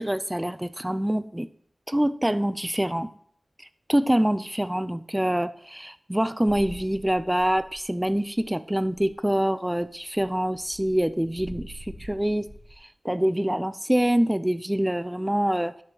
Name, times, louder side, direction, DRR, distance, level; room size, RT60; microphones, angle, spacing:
voice 1, 0.0-1.5 1.9-3.1 3.9-12.5 13.0-15.8, right 1 dB, 10° right, 12 dB, 0.5 m, -25 dB
sound 1, 6.5-8.1 8.4-8.5 8.7-9.2 9.7-12.8, right 1 dB, 70° right, 2.7 m, -45 dB
12.0 x 9.2 x 3.0 m, 0.62 s
cardioid pair, 40°, 0 cm